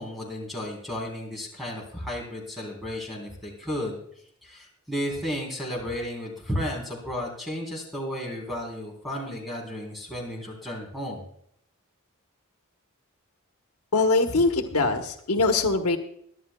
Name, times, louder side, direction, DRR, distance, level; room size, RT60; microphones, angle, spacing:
voice 1, 0.0-4.0 4.4-11.2, equal, ahead, -2 dB, 3.4 m, -33 dB
voice 2, 13.9-16.0, left 3 dB, 90° left, 5 dB, 1.1 m, -22 dB
22.5 x 11.0 x 2.2 m, 0.70 s
head